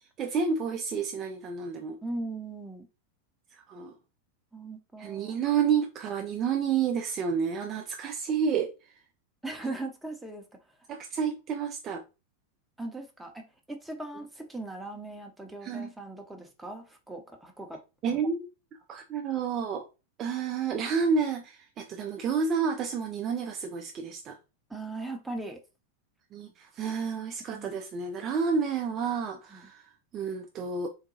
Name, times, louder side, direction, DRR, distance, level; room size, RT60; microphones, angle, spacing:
voice 1, 0.2-2.0 3.5-3.9 5.0-8.7 10.9-12.0 15.6-15.9 18.0-18.4 18.9-19.9 20.2-24.4 26.3-30.9, right 6 dB, 30° right, 0.3 m, -30 dB
voice 2, 2.0-2.9 4.5-5.4 9.4-10.4 12.8-17.8 18.1-18.2 24.7-25.6 27.5-27.8 29.5-29.7, right 2 dB, 5° right, 0.7 m, -39 dB
3.9 x 2.2 x 2.7 m
figure-of-eight pair, 90°, 0 cm